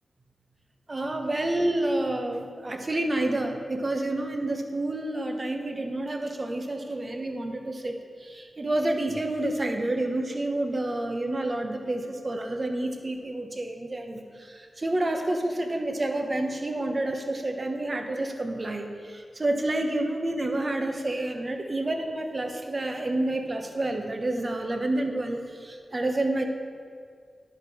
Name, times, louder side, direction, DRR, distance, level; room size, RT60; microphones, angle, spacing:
voice 1, 0.9-26.4, right 1 dB, 35° right, 4 dB, 1.1 m, -29 dB
10.5 x 5.2 x 6.2 m, 2.1 s
cardioid pair, 65°, 0 cm